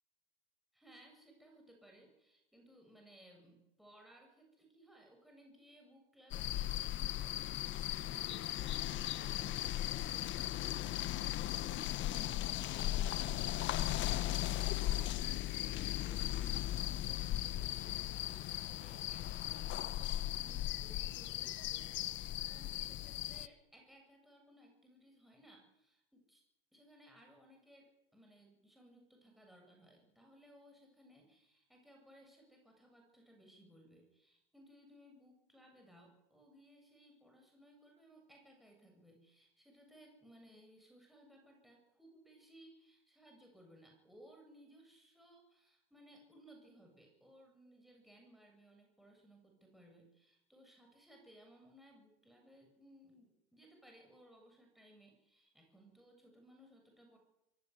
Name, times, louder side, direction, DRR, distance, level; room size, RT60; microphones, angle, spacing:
voice 1, 0.7-7.6 7.9-26.4 26.7-57.2, equal, ahead, 1 dB, 8.0 m, -62 dB
sound 1, 6.3-23.5, left 14 dB, 40° left, 1.0 m, -37 dB
23.5 x 16.5 x 9.7 m, 0.86 s
hypercardioid pair, 115°, 31 cm